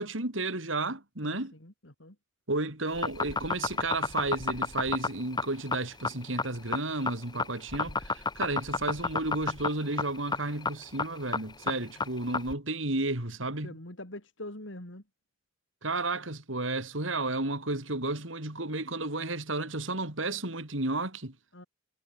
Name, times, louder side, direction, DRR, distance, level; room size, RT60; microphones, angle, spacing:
voice 1, 0.0-1.5 2.5-13.8 15.8-21.3, right 2 dB, 80° right, 4.9 m, -32 dB
voice 2, 1.2-2.2 11.6-12.1 13.6-15.0 21.5-21.6, left 1 dB, 70° left, 4.8 m, -45 dB
sound 1, 2.9-12.5, left 4 dB, 20° left, 1.3 m, -30 dB
head